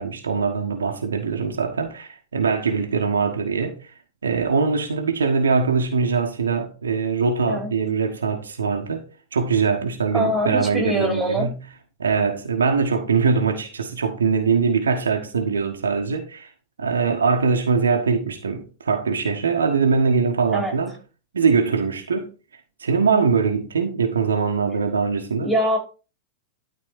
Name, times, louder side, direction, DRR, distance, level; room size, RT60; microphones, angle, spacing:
voice 1, 0.0-3.9 4.2-11.6 12.0-16.5 16.8-20.9 21.3-22.3 22.8-25.5, right 5 dB, 70° right, 1.4 m, -22 dB
voice 2, 10.1-11.5 20.5-20.8 25.4-25.8, right 1 dB, ahead, 3.8 m, -23 dB
12.0 x 4.3 x 4.4 m
figure-of-eight pair, 90°, 0 cm